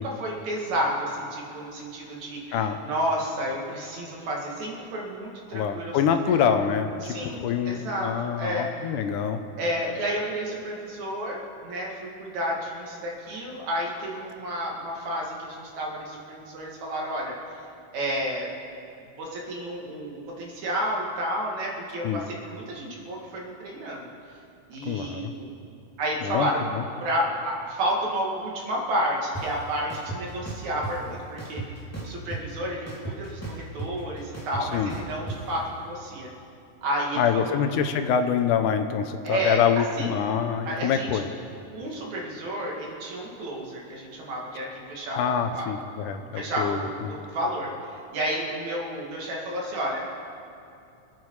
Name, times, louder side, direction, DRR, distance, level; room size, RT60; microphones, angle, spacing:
voice 1, 0.0-6.0 6.3-6.4 7.0-8.7 9.6-17.4 17.9-18.6 19.2-24.0 24.7-25.5 26.0-26.6 27.0-31.6 32.0-36.3 36.8-37.6 39.2-39.6 40.0-40.2 40.6-41.2 41.7-45.7 46.4-50.0, right 1 dB, 65° right, -2 dB, 3.5 m, -31 dB
voice 2, 5.5-7.2 7.4-9.4 22.0-22.2 24.8-25.3 26.2-26.8 34.6-34.9 37.2-41.3 45.1-47.1, left 7 dB, 85° left, 8 dB, 2.4 m, -25 dB
sound 1, 29.3-29.4 29.9-30.9 31.4-32.5 32.9-35.4, right 2 dB, 5° left, 2.3 m, -35 dB
26.0 x 9.3 x 4.8 m, 2.6 s
omnidirectional pair, 3.6 m